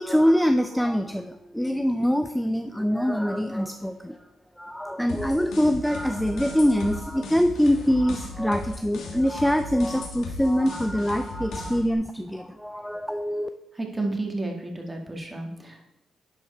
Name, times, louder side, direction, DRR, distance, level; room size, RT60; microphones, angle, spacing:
voice 1, 0.0-4.2 4.6-13.5, equal, 5° left, 8 dB, 0.4 m, -24 dB
sound 1, 5.1-11.9, left 2 dB, 80° left, 1.8 m, -37 dB
voice 2, 13.8-15.9, right 2 dB, 15° right, 1 dB, 1.8 m, -31 dB
10.5 x 4.6 x 4.3 m, 0.92 s
cardioid pair, 80°, 0 cm